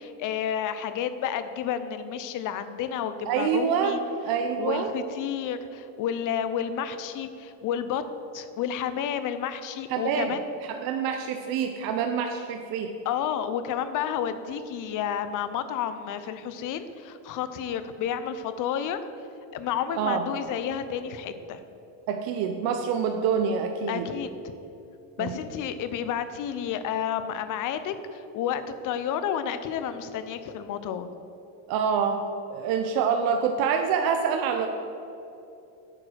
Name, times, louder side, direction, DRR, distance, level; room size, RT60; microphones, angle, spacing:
voice 1, 0.0-4.0 4.6-8.0 8.3-10.4 13.0-19.0 19.5-21.6 23.9-24.5 25.2-31.1, left 9 dB, 45° left, 11 dB, 0.6 m, -31 dB
voice 2, 3.2-4.0 4.2-4.9 9.9-10.3 10.7-12.9 20.0-20.3 22.1-24.1 25.2-25.4 31.7-32.2 32.5-34.7, right 7 dB, 55° right, 5 dB, 0.7 m, -26 dB
8.5 x 4.8 x 6.3 m, 2.8 s
cardioid pair, 125°, 44 cm